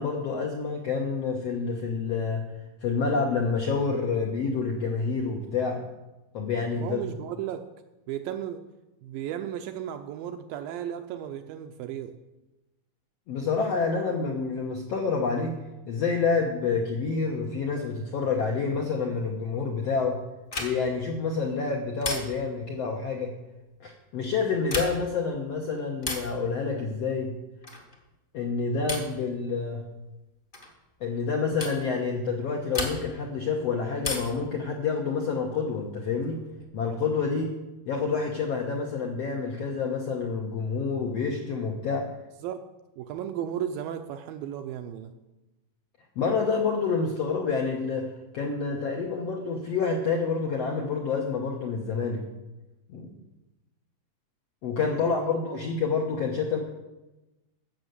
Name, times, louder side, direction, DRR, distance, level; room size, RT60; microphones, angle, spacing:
voice 1, 0.0-2.5 2.8-5.8 6.3-7.0 13.3-15.5 15.9-20.2 20.6-23.3 23.8-27.3 28.3-29.8 31.0-36.4 36.7-37.5 37.9-42.1 46.2-48.1 48.3-52.2 52.9-53.2 54.6-56.6, left 5 dB, 70° left, 1 dB, 1.5 m, -28 dB
voice 2, 6.7-7.6 8.1-8.6 9.0-12.1 42.4-42.6 43.0-45.2 54.9-55.3, right 10 dB, 80° right, 7 dB, 2.2 m, -35 dB
sound 1, 20.5-21.0 22.0-22.6 24.6-25.2 26.0-26.4 27.6-28.0 28.9-29.2 30.5-30.7 31.6-31.8 32.7-33.3 34.0-34.5 36.0-36.6, left 2 dB, 40° left, 0.7 m, -34 dB
14.5 x 6.5 x 8.0 m, 1.0 s
omnidirectional pair, 4.6 m